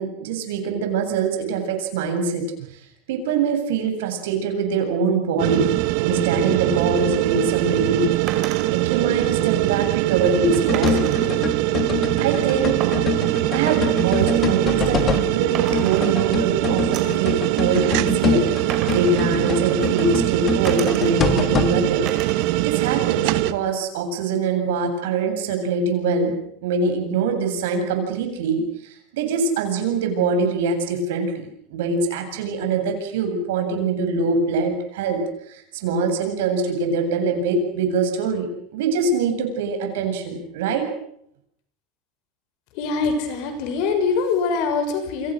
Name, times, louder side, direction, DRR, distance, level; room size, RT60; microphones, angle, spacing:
voice 1, 0.0-2.7 3.1-8.1 8.7-11.3 12.2-12.8 13.1-13.2 13.5-22.1 22.6-35.2 35.5-40.8, right 4 dB, 75° right, 5 dB, 7.9 m, -24 dB
sound 1, 5.4-23.5, right 18 dB, 50° right, 1.3 m, -22 dB
sound 2, 8.3-8.7 10.7-11.3 12.8-15.3 15.5-16.5 16.9-17.3 18.7-20.2 20.6-21.4 22.1-22.6 22.9-23.7, right 8 dB, 30° right, 4.4 m, -35 dB
sound 3, 10.4-15.4 15.7-21.8, left 6 dB, 20° left, 1.7 m, -26 dB
voice 2, 42.7-45.3, left 4 dB, 45° left, 7 dB, 6.4 m, -23 dB
29.5 x 25.5 x 6.5 m, 0.70 s
supercardioid pair, 180°, 0 cm